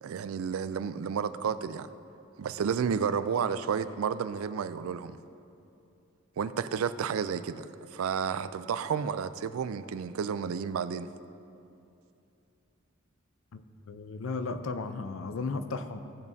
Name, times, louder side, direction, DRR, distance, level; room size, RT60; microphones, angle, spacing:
voice 1, 0.0-1.9 2.4-5.2 6.4-7.7 7.9-11.1, right 6 dB, 85° right, 13 dB, 0.4 m, -31 dB
voice 2, 13.9-16.0, left 3 dB, 70° left, 9 dB, 0.5 m, -35 dB
16.5 x 7.0 x 2.7 m, 2.7 s
head